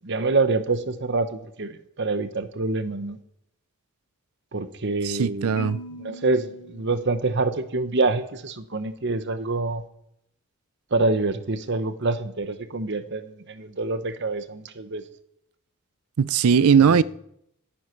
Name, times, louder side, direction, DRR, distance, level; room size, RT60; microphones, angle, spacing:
voice 1, 0.0-3.2 4.5-5.6 6.0-9.8 10.9-15.0 16.9-17.0, right 3 dB, 50° right, 0.9 m, -26 dB
voice 2, 5.0-5.8 16.2-17.0, right 6 dB, 75° right, 0.5 m, -19 dB
Marimba xylophone, 5.6-7.7, equal, 55° left, 2.1 m, -41 dB
18.0 x 10.0 x 4.5 m
head